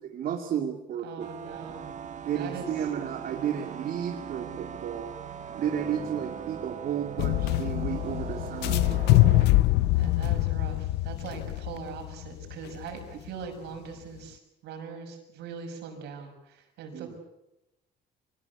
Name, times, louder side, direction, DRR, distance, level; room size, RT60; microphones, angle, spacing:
voice 1, 0.0-1.7 2.2-5.1 5.5-9.6 16.9-17.2, right 9 dB, 60° right, 3 dB, 2.4 m, -33 dB
voice 2, 1.0-1.9 2.3-2.7 10.0-16.3 16.8-17.2, right 6 dB, 80° right, 4 dB, 6.5 m, -41 dB
sound 1, 1.2-9.5, right 8 dB, 45° right, 2.0 m, -40 dB
sound 2, 7.2-13.3, left 17 dB, 90° left, 0.8 m, -24 dB
24.5 x 20.5 x 8.5 m, 0.92 s
cardioid pair, 110°, 17 cm